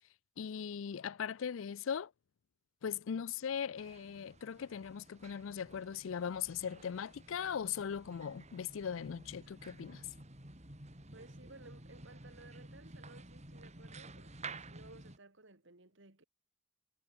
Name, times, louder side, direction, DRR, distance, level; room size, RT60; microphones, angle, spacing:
voice 1, 0.4-2.1 2.8-10.0, left 7 dB, 70° left, 0.4 m, -39 dB
sound 1, 3.8-15.2, right 3 dB, 35° right, 4.1 m, -52 dB
voice 2, 11.1-16.2, right 2 dB, 60° right, 2.4 m, -58 dB
head